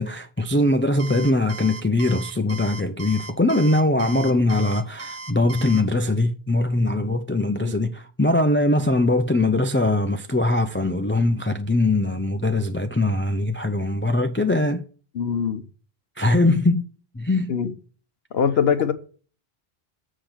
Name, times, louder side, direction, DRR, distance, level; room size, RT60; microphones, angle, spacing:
voice 1, 0.0-14.8 16.2-16.9 17.1-17.5, left 2 dB, 15° left, 0.4 m, -21 dB
Alarm, 1.0-5.8, right 4 dB, 35° right, 1.1 m, -37 dB
voice 2, 4.0-4.4 7.6-7.7 15.1-15.6 17.5-17.7 18.3-18.9, left 7 dB, 70° left, 1.1 m, -24 dB
7.6 x 5.1 x 5.7 m
omnidirectional pair, 1.1 m